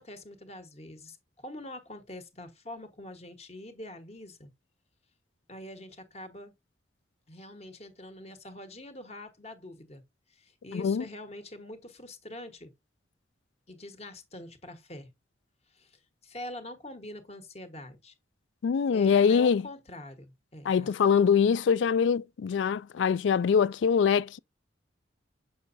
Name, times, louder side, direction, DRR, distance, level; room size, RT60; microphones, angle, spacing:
voice 1, 0.0-4.5 5.5-6.5 7.3-10.0 10.3-12.7 13.7-15.1 15.7-18.1 18.9-20.9, left 1 dB, 35° left, 1.3 m, -44 dB
voice 2, 10.7-11.0 18.6-19.6 20.7-24.4, left 6 dB, 75° left, 0.3 m, -23 dB
7.0 x 6.1 x 2.6 m
head